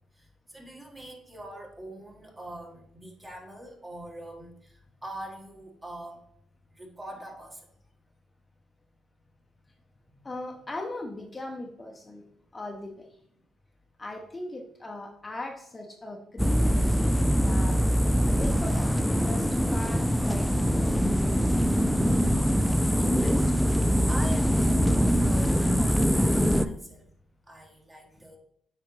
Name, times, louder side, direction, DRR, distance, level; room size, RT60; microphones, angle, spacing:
voice 1, 0.2-6.2 6.7-7.7 23.0-23.6 23.9-27.1 27.5-28.4, right 1 dB, 20° right, 0 dB, 1.7 m, -43 dB
voice 2, 10.2-12.2 12.5-13.1 14.0-17.8 18.3-20.5 20.7-21.8, left 2 dB, 25° left, 1 dB, 0.8 m, -39 dB
sound 1, 16.4-26.7, equal, 5° left, 0.3 m, -23 dB
7.9 x 4.9 x 3.3 m, 0.71 s
cardioid pair, 90°, 0 cm